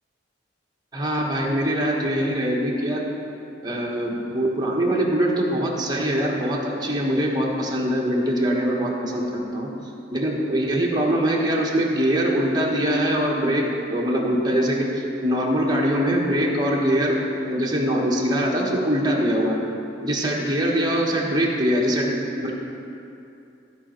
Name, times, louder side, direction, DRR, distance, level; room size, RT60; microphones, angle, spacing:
voice 1, 0.9-3.1 3.6-9.7 10.1-19.6 20.0-22.5, equal, 25° right, -2 dB, 1.3 m, -23 dB
15.0 x 5.1 x 4.4 m, 2.7 s
head